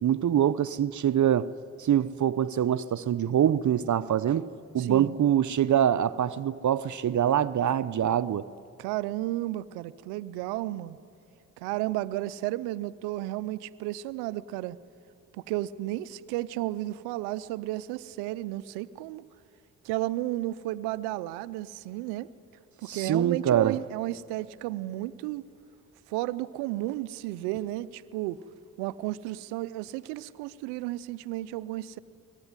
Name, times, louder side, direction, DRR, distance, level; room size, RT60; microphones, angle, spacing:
voice 1, 0.0-1.5 1.8-4.5 4.7-8.5 22.9-23.8, right 10 dB, 50° right, 0.7 m, -24 dB
voice 2, 4.8-5.1 8.8-11.0 11.6-14.8 15.3-19.2 19.8-22.3 22.8-25.4 26.1-28.4 28.8-32.0, right 16 dB, 90° right, 0.6 m, -33 dB
23.0 x 20.0 x 9.7 m
hypercardioid pair, 40°, 38 cm